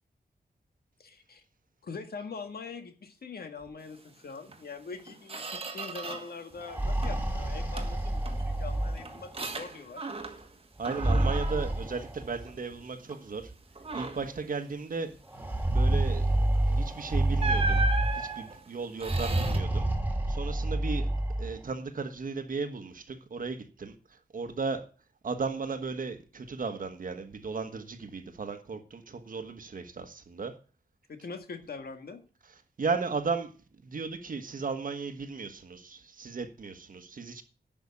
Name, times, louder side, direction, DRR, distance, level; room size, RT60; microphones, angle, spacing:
voice 1, 1.0-1.4 1.8-10.2 31.1-32.2, left 4 dB, 65° left, 1.8 m, -43 dB
Squeak, 4.5-4.6 5.0-6.4 6.7-7.3 7.8-10.6 10.8-12.7 13.1-13.3 13.8-14.4 16.5-16.7 17.4-19.6, right 3 dB, 35° right, 1.4 m, -36 dB
sound 1, 6.5-9.4 10.8-12.5 13.5-13.6 13.9-14.0 15.3-18.4 19.0-21.6, right 1 dB, 10° right, 2.1 m, -28 dB
voice 2, 10.8-13.5 13.9-15.2 15.7-16.3 16.7-17.8 18.1-19.9 20.3-21.1 21.4-23.9 24.3-24.8 25.2-30.5 32.8-33.5 33.8-37.4, right 4 dB, 50° right, 1.4 m, -35 dB
11.0 x 6.1 x 8.6 m
wide cardioid pair, 165°, 17 cm